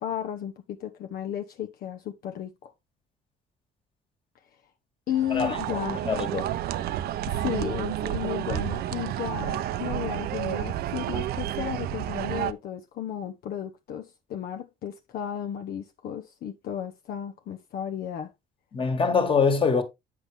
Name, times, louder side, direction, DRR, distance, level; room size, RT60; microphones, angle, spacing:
voice 1, 0.0-2.7 5.1-6.0 7.3-18.3, left 10 dB, 65° left, 0.8 m, -34 dB
sound 1, 5.1-12.5, right 12 dB, 70° right, 0.6 m, -30 dB
voice 2, 6.0-6.5 18.7-19.8, left 5 dB, 30° left, 1.7 m, -23 dB
8.4 x 5.9 x 3.4 m
cardioid pair, 110°, 17 cm